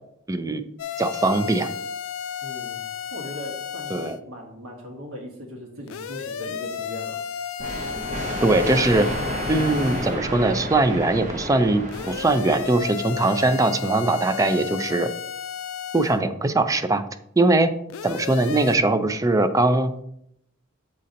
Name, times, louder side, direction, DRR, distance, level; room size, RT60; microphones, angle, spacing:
voice 1, 0.3-0.6 1.0-1.7 3.9-4.2 8.4-9.1 9.5-15.1 15.9-17.0 17.4-17.7 18.0-19.9, right 2 dB, 15° right, 9 dB, 0.4 m, -21 dB
sound 1, 0.8-4.2 5.9-10.2 11.9-16.2 17.9-18.8, left 7 dB, 80° left, 0.4 m, -33 dB
voice 2, 2.4-2.8 3.1-7.2, left 1 dB, 85° right, 1 dB, 1.3 m, -38 dB
sound 2, 7.6-13.2, equal, 35° right, 0.8 m, -31 dB
7.5 x 2.8 x 5.1 m, 0.75 s
head